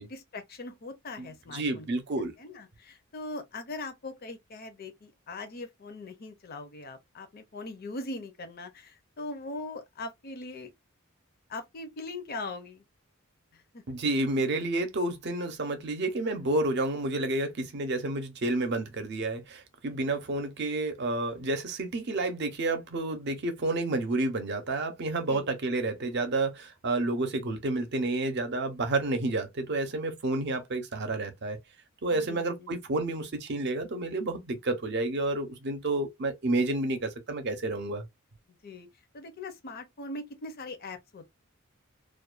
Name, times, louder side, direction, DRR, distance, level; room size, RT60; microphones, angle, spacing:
voice 1, 0.0-1.9 2.2-10.7 11.5-12.8 13.5-14.0 20.0-20.2 25.3-25.5 32.1-32.8 35.9-36.0 38.5-38.9 39.1-41.3, left 2 dB, 45° left, 0.5 m, -41 dB
voice 2, 1.2-2.3 13.9-31.6 32.0-38.0, right 2 dB, 50° right, 0.6 m, -30 dB
2.4 x 2.2 x 2.4 m
head